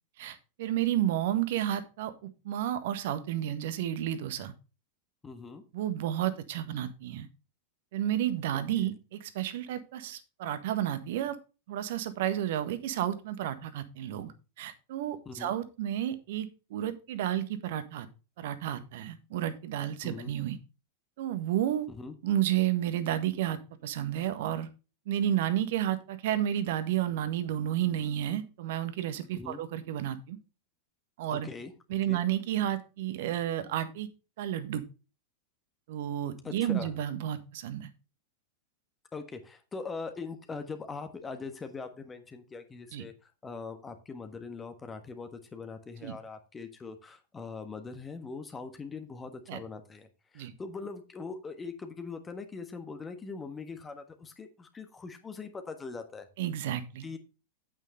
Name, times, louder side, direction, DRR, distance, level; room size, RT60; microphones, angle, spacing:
voice 1, 0.2-4.5 5.7-7.3 7.9-11.4 11.7-14.3 14.6-18.1 18.4-20.6 21.2-21.9 22.2-24.7 25.1-30.4 31.2-31.5 31.9-34.1 34.4-34.8 35.9-37.9 42.9-43.0 46.0-46.1 49.5-49.6 50.3-50.5 56.4-57.0, right 11 dB, 55° right, 11 dB, 1.5 m, -31 dB
voice 2, 5.2-5.6 8.8-8.9 15.2-15.5 20.0-20.3 21.9-22.2 29.3-29.6 31.3-31.7 32.1-32.2 36.4-36.9 39.1-56.3 57.0-57.2, left 4 dB, 15° left, 7 dB, 1.4 m, -41 dB
9.1 x 8.9 x 3.3 m, 0.30 s
figure-of-eight pair, 90°, 0 cm